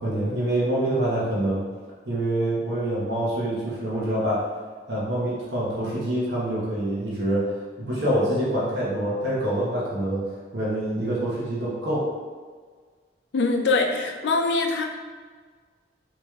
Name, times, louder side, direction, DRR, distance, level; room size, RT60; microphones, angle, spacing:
voice 1, 0.0-1.6 2.0-4.4 4.9-10.2 10.5-12.1, right 1 dB, 80° right, -7 dB, 1.0 m, -26 dB
voice 2, 13.3-14.8, left 3 dB, 85° left, 3 dB, 0.4 m, -23 dB
4.6 x 3.0 x 2.3 m, 1.5 s
head